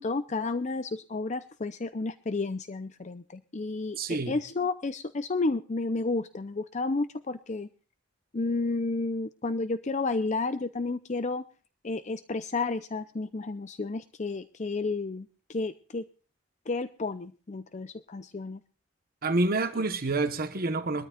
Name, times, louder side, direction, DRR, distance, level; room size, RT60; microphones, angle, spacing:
voice 1, 0.0-4.0 4.3-7.7 8.3-11.5 11.8-16.0 16.7-18.6, left 3 dB, 35° left, 0.6 m, -31 dB
voice 2, 4.0-4.4 19.2-21.1, right 2 dB, 50° right, 1.1 m, -28 dB
22.5 x 13.5 x 2.4 m
head